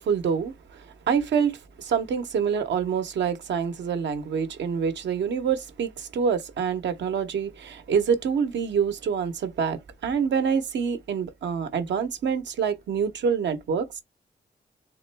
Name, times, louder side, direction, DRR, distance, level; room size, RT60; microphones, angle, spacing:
voice 1, 0.0-1.6 1.9-14.0, right 6 dB, 85° right, 0.8 m, -26 dB
3.7 x 2.9 x 3.3 m
cardioid pair, 95°, 18 cm